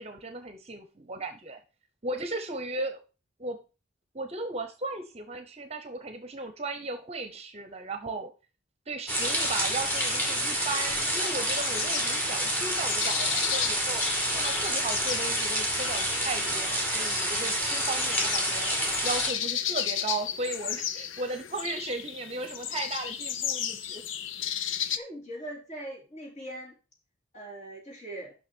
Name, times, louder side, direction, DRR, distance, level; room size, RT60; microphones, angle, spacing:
voice 1, 0.0-1.6 2.0-3.0 3.4-3.6 4.1-8.3 8.9-14.1 14.3-18.7 19.0-24.0, right 3 dB, 35° right, 8 dB, 0.9 m, -36 dB
sound 1, 9.1-19.3, right 1 dB, 10° left, 2.1 m, -28 dB
sound 2, 9.2-25.0, left 9 dB, 85° left, 0.7 m, -35 dB
voice 2, 25.0-26.7 27.3-28.3, right 1 dB, 35° left, -2 dB, 3.7 m, -41 dB
6.1 x 5.8 x 6.2 m, 0.32 s
head